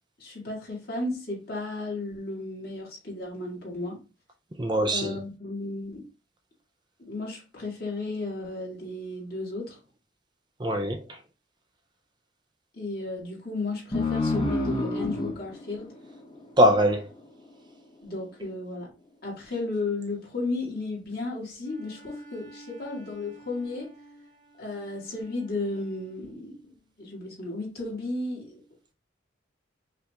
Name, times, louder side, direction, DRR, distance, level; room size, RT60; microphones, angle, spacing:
voice 1, 0.2-4.0 4.9-6.0 7.0-9.8 12.7-15.9 18.0-18.9 19.2-23.9 24.6-28.6, left 2 dB, 50° left, 1.9 m, -34 dB
voice 2, 4.6-5.2 10.6-11.2 16.6-17.1, equal, 20° right, 0.4 m, -22 dB
sound 1, 13.9-17.1, left 2 dB, 25° left, 0.9 m, -29 dB
Bowed string instrument, 21.6-26.3, right 2 dB, 45° right, 1.2 m, -52 dB
5.5 x 2.5 x 3.3 m
head